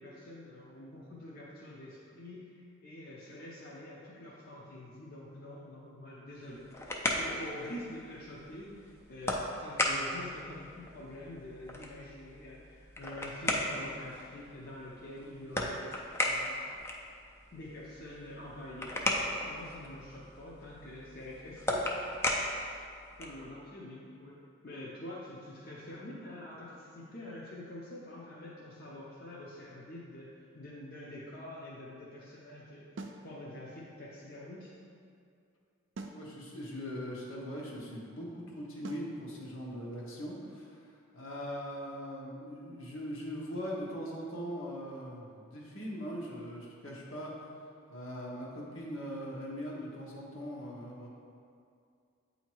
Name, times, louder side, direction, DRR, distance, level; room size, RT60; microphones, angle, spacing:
voice 1, 0.0-15.8 16.2-16.6 17.5-21.9 22.2-22.4 23.2-34.7, left 1 dB, 45° left, -6 dB, 0.7 m, -46 dB
sound 1, 6.4-23.5, left 1 dB, 10° left, 0.4 m, -37 dB
sound 2, 33.0-33.3 36.0-36.3 38.8-39.1, right 3 dB, 60° right, 0.4 m, -42 dB
voice 2, 36.1-40.8 41.1-51.1, equal, 70° left, -3 dB, 1.1 m, -41 dB
8.3 x 2.8 x 4.5 m, 2.4 s
head